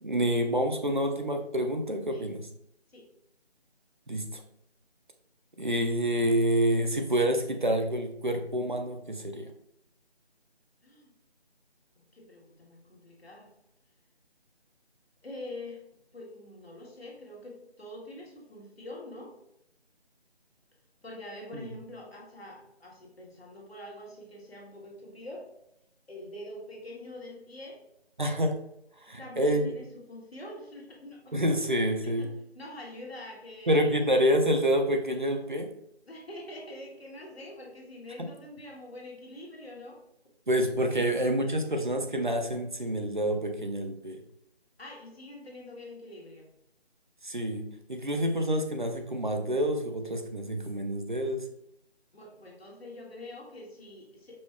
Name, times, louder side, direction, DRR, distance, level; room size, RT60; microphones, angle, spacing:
voice 1, 0.0-2.5 4.1-4.4 5.6-9.5 28.2-28.6 29.1-29.7 31.3-32.3 33.7-35.7 38.2-38.3 40.5-44.2 47.2-51.4, equal, 50° right, 5 dB, 0.5 m, -27 dB
voice 2, 12.1-13.5 15.2-15.8 16.1-19.4 21.0-25.5 26.1-27.8 29.2-31.3 32.2-34.1 36.0-40.0 44.8-46.5 52.1-54.4, left 1 dB, 70° left, -1 dB, 1.4 m, -45 dB
5.1 x 2.2 x 3.4 m, 0.78 s
figure-of-eight pair, 175°, 32 cm